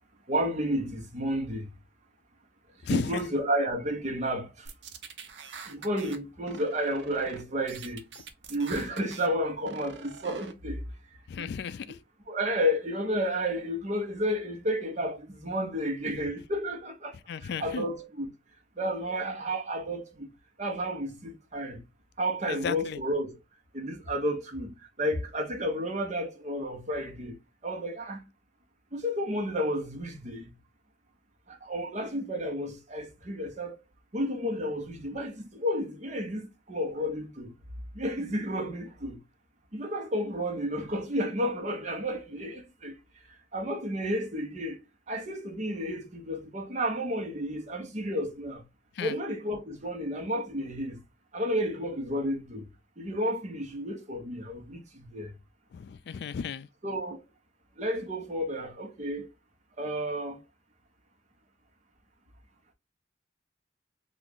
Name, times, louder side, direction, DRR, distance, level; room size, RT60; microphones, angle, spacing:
voice 1, 0.3-1.7 2.9-4.7 5.7-8.0 8.5-10.8 11.3-11.5 12.3-17.1 17.4-18.3 18.8-20.3 20.6-21.8 22.2-23.4 23.7-27.4 27.6-28.2 28.9-30.5 31.5-33.8 34.1-37.5 37.9-39.2 39.7-43.0 43.5-44.8 45.1-48.6 49.0-51.0 51.3-52.7 53.0-55.3 56.8-57.2 57.8-59.3 59.8-60.4, equal, 40° right, 1.0 m, -31 dB
voice 2, 2.8-3.2 11.3-12.0 17.3-17.9 22.5-23.0 48.9-49.2 55.7-56.7, left 6 dB, 65° left, 0.3 m, -34 dB
sound 1, 4.7-6.2 6.5-7.4 7.7-9.3 9.6-10.5, right 5 dB, 85° right, 0.6 m, -44 dB
3.0 x 2.5 x 3.6 m
head